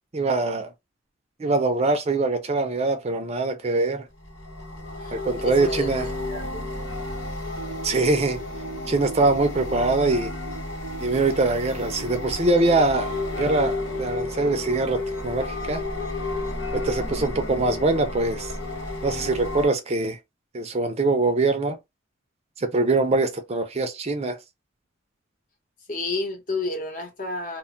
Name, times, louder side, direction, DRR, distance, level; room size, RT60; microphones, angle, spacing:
voice 1, 0.1-0.7 1.4-4.1 5.1-6.1 7.8-8.4 8.9-10.3 11.0-15.8 16.7-18.5 19.0-20.2 20.5-21.8 22.6-24.4, right 3 dB, 30° right, 0.4 m, -23 dB
sound 1, 4.2-19.7, left 2 dB, 85° left, 1.3 m, -32 dB
voice 2, 5.4-5.9 6.3-6.9 25.9-27.6, left 2 dB, 45° left, 0.9 m, -31 dB
2.2 x 2.1 x 3.6 m
head